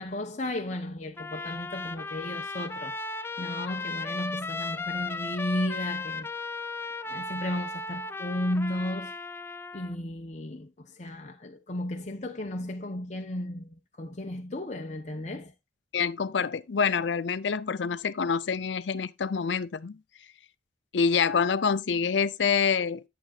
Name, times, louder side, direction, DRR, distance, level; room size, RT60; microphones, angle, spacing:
voice 1, 0.0-3.0 3.4-6.3 7.1-9.1 9.7-15.5, left 1 dB, 40° left, 0.9 m, -34 dB
Trumpet, 1.2-9.9, left 3 dB, 15° left, 0.5 m, -36 dB
voice 2, 15.9-20.0 20.9-23.0, left 6 dB, 80° left, 0.5 m, -26 dB
11.0 x 7.7 x 2.4 m
head